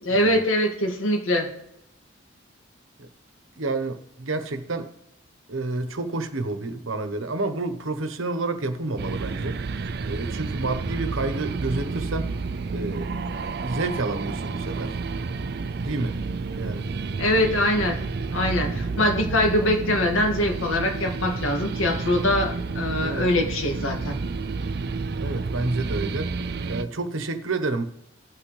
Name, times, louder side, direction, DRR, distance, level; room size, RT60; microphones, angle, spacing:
voice 1, 0.0-1.5 17.2-18.0 18.3-24.2, left 1 dB, 80° left, 2 dB, 2.0 m, -23 dB
voice 2, 3.6-4.9 5.5-9.8 10.1-12.3 12.7-13.1 13.6-15.0 15.8-16.2 16.5-16.9 23.0-23.3 25.2-26.3 26.7-27.8, right 2 dB, 85° right, 9 dB, 1.1 m, -29 dB
sound 1, 9.0-26.8, right 4 dB, 50° right, 0.4 m, -30 dB
18.0 x 6.0 x 3.3 m, 0.77 s
head